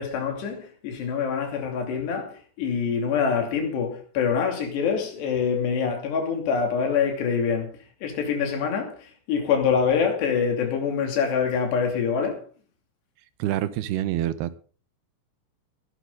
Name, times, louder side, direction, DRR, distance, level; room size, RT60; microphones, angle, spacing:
voice 1, 0.0-7.7 8.0-12.4, left 6 dB, 85° left, 4.9 m, -25 dB
voice 2, 13.4-14.5, right 13 dB, 80° right, 2.9 m, -26 dB
19.0 x 11.5 x 3.9 m
omnidirectional pair, 4.7 m